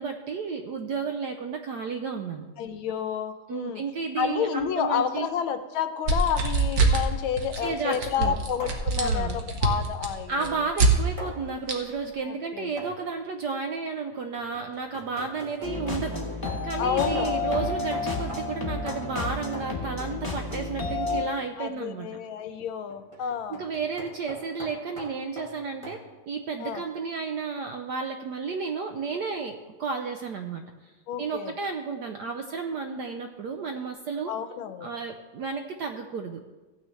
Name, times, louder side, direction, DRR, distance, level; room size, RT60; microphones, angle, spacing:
voice 1, 0.0-2.4 3.5-5.3 7.6-8.4 9.0-9.4 10.3-16.2 16.6-22.1 23.5-26.0 26.3-30.9 31.2-34.3 34.8-36.4, right 5 dB, 70° right, 5 dB, 1.0 m, -32 dB
voice 2, 2.6-3.8 4.2-10.6 12.2-12.7 16.8-17.5 21.6-23.6 26.6-26.9 31.1-31.5 34.3-34.9, left 8 dB, 75° left, 10 dB, 1.4 m, -30 dB
sound 1, 6.1-7.1 7.4-7.6 7.9-10.9 11.7-11.8, right 3 dB, 50° right, 1.4 m, -24 dB
sound 2, 7.3-8.9 11.2-11.4 12.8-13.0 14.3-20.2 20.5-20.8 22.9-26.0, equal, 15° right, 1.7 m, -42 dB
sound 3, 15.6-21.2, left 3 dB, 10° left, 1.3 m, -31 dB
15.5 x 9.4 x 3.2 m, 1.2 s
omnidirectional pair, 2.4 m